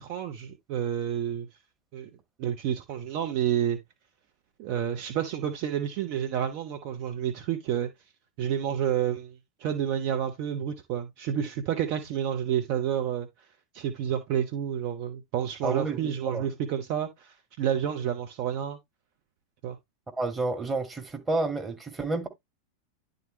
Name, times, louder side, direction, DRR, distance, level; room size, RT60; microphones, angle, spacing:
voice 1, 0.0-1.5 1.9-2.1 2.4-3.8 4.6-7.9 8.4-13.3 13.7-18.8 19.6-19.8, right 9 dB, 45° right, 0.9 m, -29 dB
voice 2, 15.6-16.5 20.2-22.3, right 2 dB, 15° right, 2.0 m, -30 dB
11.0 x 3.9 x 3.2 m
figure-of-eight pair, 90°, 0 cm